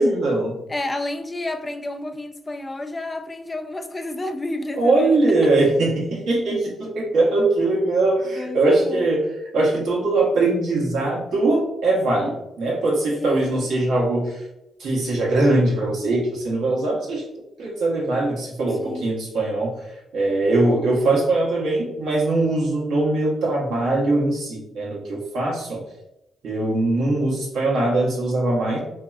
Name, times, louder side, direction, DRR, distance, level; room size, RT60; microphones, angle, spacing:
voice 1, 0.0-0.6 4.8-9.3 9.5-14.4 14.8-17.2 17.6-19.7 20.1-25.8 26.4-28.8, right 2 dB, 75° right, 1.0 m, -21 dB
voice 2, 0.7-5.2 8.3-9.1 13.2-13.6 18.8-19.1, left 1 dB, 25° left, 0.3 m, -31 dB
2.9 x 2.7 x 2.3 m
supercardioid pair, 55°, 0 cm